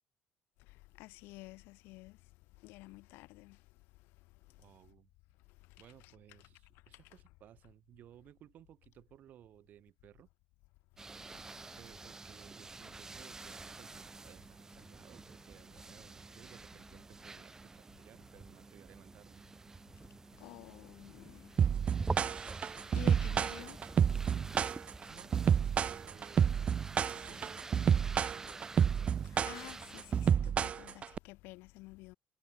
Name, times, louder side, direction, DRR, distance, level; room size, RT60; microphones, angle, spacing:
voice 1, 1.0-2.1 2.6-3.6 20.4-21.5 22.9-23.8 29.5-32.2, left 22 dB, 85° left, 2.0 m, -50 dB
voice 2, 4.6-5.1 5.8-10.3 11.8-19.4 25.1-26.7 27.2-29.4, right 11 dB, 50° right, 6.5 m, -59 dB
sound 1, 11.0-30.3, right 3 dB, 15° right, 1.5 m, -47 dB
sound 2, 21.6-31.2, right 8 dB, 35° right, 0.6 m, -29 dB
cardioid pair, 145°, 4 cm